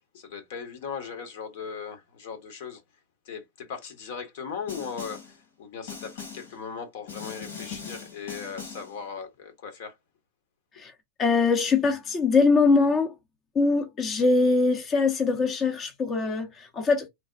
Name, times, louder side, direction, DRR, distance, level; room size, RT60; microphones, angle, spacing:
voice 1, 0.1-2.8 3.2-10.0, left 6 dB, 65° left, 1.1 m, -38 dB
Snare drum, 4.7-5.4 5.9-6.6 7.1-9.0, left 6 dB, 80° left, 2.0 m, -40 dB
voice 2, 11.2-13.2 13.5-17.1, left 4 dB, 30° left, 0.7 m, -22 dB
3.3 x 2.0 x 2.5 m
hypercardioid pair, 110°, 0 cm